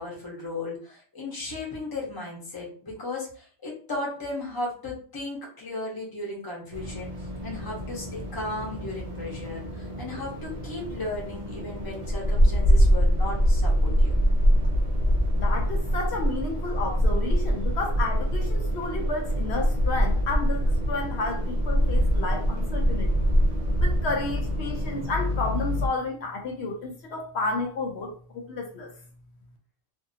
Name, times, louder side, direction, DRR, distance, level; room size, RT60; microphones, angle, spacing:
voice 1, 0.0-14.2, left 2 dB, 20° left, -2 dB, 0.8 m, -35 dB
sound 1, 6.7-25.9, equal, 55° right, 0.4 m, -24 dB
voice 2, 15.3-23.2 23.8-28.9, left 3 dB, 65° left, 1 dB, 0.8 m, -31 dB
2.7 x 2.5 x 2.6 m, 0.43 s
omnidirectional pair, 1.4 m